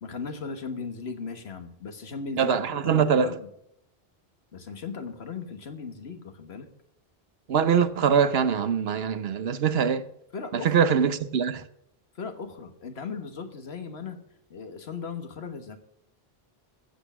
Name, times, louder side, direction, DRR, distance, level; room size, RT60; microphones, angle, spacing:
voice 1, 0.0-3.5 4.5-6.7 10.3-10.8 12.1-14.2 14.5-15.8, left 5 dB, 80° left, 1.6 m, -37 dB
voice 2, 2.4-3.3 7.5-10.0 10.5-11.6, right 7 dB, 75° right, 1.0 m, -23 dB
14.0 x 8.1 x 6.1 m
omnidirectional pair, 1.1 m